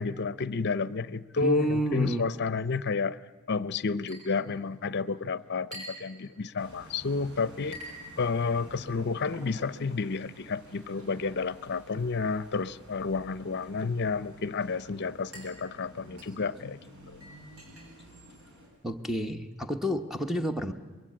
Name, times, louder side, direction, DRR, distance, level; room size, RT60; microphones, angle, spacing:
voice 1, 0.0-3.2 3.5-7.8 8.2-16.8 17.1-17.2, left 4 dB, 50° left, 16 dB, 0.7 m, -30 dB
voice 2, 1.4-2.3 18.8-20.7, right 1 dB, ahead, 6 dB, 1.0 m, -30 dB
Chink clink, 4.1-19.1, equal, 85° right, 7.3 m, -52 dB
sound 1, 6.6-18.7, equal, 55° right, 6.6 m, -52 dB
24.0 x 21.5 x 8.7 m, 1.4 s
head